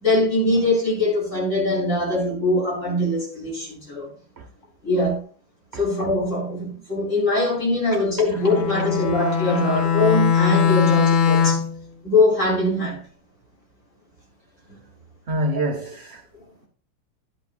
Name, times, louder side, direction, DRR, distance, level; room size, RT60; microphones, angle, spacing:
voice 1, 0.0-4.1 4.8-5.2 5.7-11.6 12.0-13.0, left 2 dB, 40° left, 4.5 m, -22 dB
Bowed string instrument, 8.4-11.8, left 7 dB, 85° left, 1.6 m, -20 dB
voice 2, 15.3-16.2, right 1 dB, 45° right, 0.9 m, -27 dB
12.5 x 8.2 x 2.6 m
omnidirectional pair, 2.1 m